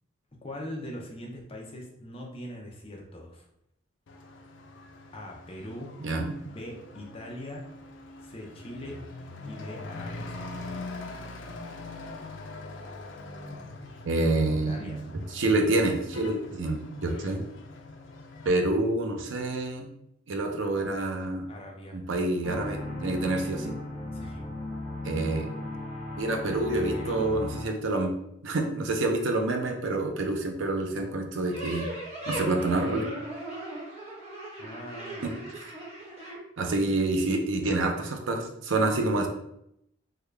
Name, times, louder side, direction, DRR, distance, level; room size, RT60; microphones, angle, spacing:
voice 1, 0.3-3.5 5.1-7.7 8.2-9.1 9.4-10.9 14.5-15.4 21.5-22.0 24.1-24.4 26.9-27.3 34.6-35.2, left 1 dB, 30° left, -1 dB, 0.6 m, -42 dB
Truck / Accelerating revving vroom, 4.1-18.5, left 2 dB, 70° left, 0.4 m, -43 dB
voice 2, 6.0-6.4 14.0-17.4 18.4-19.9 20.3-21.5 21.9-23.8 25.0-25.5 26.2-28.1 28.4-31.9 32.3-33.0 35.2-35.7 36.6-39.3, right 2 dB, 80° right, 3 dB, 0.6 m, -27 dB
sound 1, 22.4-27.6, left 1 dB, 10° left, 0.9 m, -36 dB
sound 2, 31.5-36.4, right 1 dB, 35° right, 1.1 m, -38 dB
3.6 x 2.3 x 3.2 m, 0.77 s
head